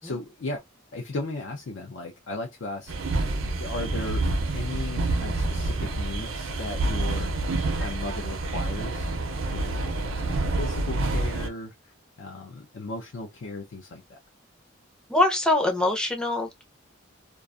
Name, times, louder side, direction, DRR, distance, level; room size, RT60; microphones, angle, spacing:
voice 1, 0.0-0.6 0.9-2.9 3.2-4.3 4.5-11.9 12.2-14.2, left 2 dB, 65° left, 0.5 m, -36 dB
sound 1, 2.9-11.5, right 2 dB, 70° right, 0.5 m, -28 dB
voice 2, 15.1-16.6, left 2 dB, 5° left, 0.5 m, -24 dB
2.4 x 2.3 x 2.3 m
head